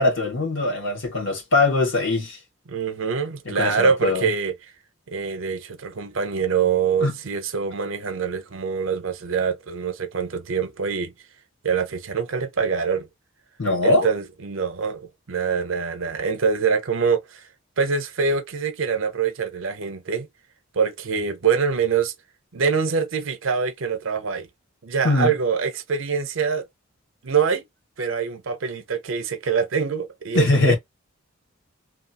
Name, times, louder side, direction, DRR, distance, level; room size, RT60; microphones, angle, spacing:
voice 1, 0.0-2.4 3.4-4.3 7.0-7.2 13.6-14.1 25.0-25.3 30.3-30.8, left 2 dB, 60° left, 1.3 m, -21 dB
voice 2, 2.7-4.5 5.1-11.1 11.6-13.1 13.8-17.4 17.8-20.3 20.7-22.1 22.5-24.5 24.8-26.7 27.2-27.6 28.0-30.7, right 6 dB, 65° right, 0.6 m, -24 dB
2.9 x 2.4 x 2.8 m
head